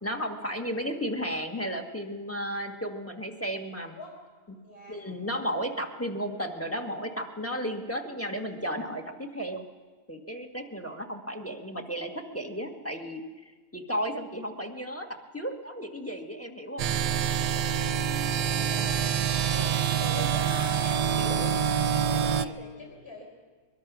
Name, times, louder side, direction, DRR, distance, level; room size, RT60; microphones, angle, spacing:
voice 1, 0.0-4.0 4.9-9.7 10.1-13.2 13.7-16.9 19.5-19.7, equal, 10° left, 3 dB, 1.3 m, -34 dB
voice 2, 0.6-1.0 3.9-4.1 4.6-5.0 18.2-19.1 19.4-21.6 21.8-23.3, left 1 dB, 35° left, -2 dB, 5.3 m, -42 dB
sound 1, 16.8-22.5, right 8 dB, 85° right, 1.4 m, -26 dB
22.5 x 21.5 x 6.1 m, 1.4 s
omnidirectional pair, 1.7 m